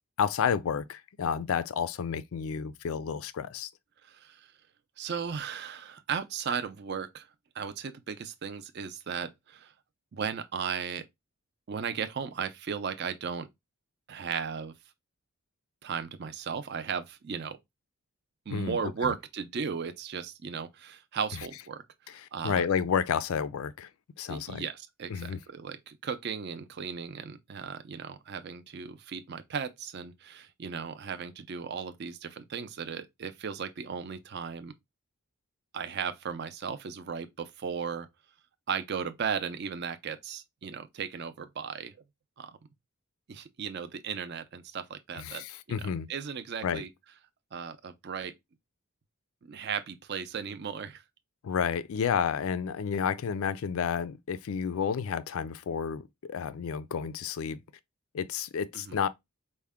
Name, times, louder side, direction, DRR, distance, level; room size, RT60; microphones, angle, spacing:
voice 1, 0.2-3.7 18.5-18.9 22.4-23.9 24.2-24.6 25.1-25.4 45.2-46.1 46.6-46.8 51.4-57.6 58.1-59.1, left 7 dB, 70° left, 0.4 m, -30 dB
voice 2, 4.0-4.5 5.0-7.3 7.5-9.7 10.1-11.0 11.7-13.5 14.1-14.7 15.8-17.6 18.5-21.8 22.3-22.6 24.3-34.7 35.7-38.1 38.7-41.9 42.4-42.5 43.3-46.9 47.5-48.3 49.5-51.0 58.7-59.0, right 6 dB, 45° right, 0.4 m, -36 dB
4.5 x 2.1 x 3.4 m
head